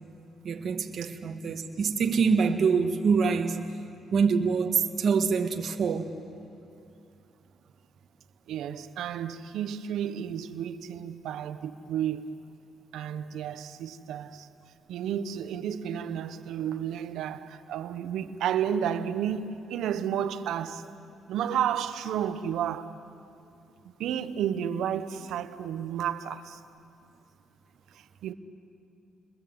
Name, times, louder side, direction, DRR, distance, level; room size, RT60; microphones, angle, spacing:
voice 1, 0.4-3.6 4.1-6.1, right 5 dB, 55° right, 1.6 m, -25 dB
voice 2, 8.5-12.3 12.9-14.5 14.9-20.8 21.3-22.9 24.0-26.6 28.2-28.3, right 9 dB, 80° right, 1.2 m, -31 dB
29.5 x 21.5 x 7.9 m
cardioid pair, 90°, 0 cm